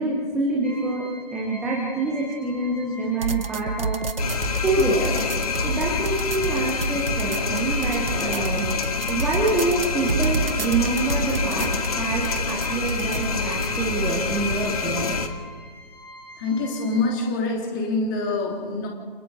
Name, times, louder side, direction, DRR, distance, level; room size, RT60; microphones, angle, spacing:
voice 1, 0.0-4.0 4.6-5.2 5.6-8.7 9.1-11.7 12.0-15.2, right 2 dB, ahead, -4 dB, 0.8 m, -26 dB
sound 1, 0.6-17.3, equal, 65° left, 3.4 m, -43 dB
sound 2, 3.2-14.2, right 4 dB, 65° right, 0.9 m, -29 dB
sound 3, 4.2-15.3, left 5 dB, 40° left, 1.6 m, -27 dB
voice 2, 16.4-18.9, left 3 dB, 20° left, 0 dB, 3.2 m, -25 dB
29.5 x 27.0 x 4.1 m, 1.5 s
figure-of-eight pair, 145°, 30 cm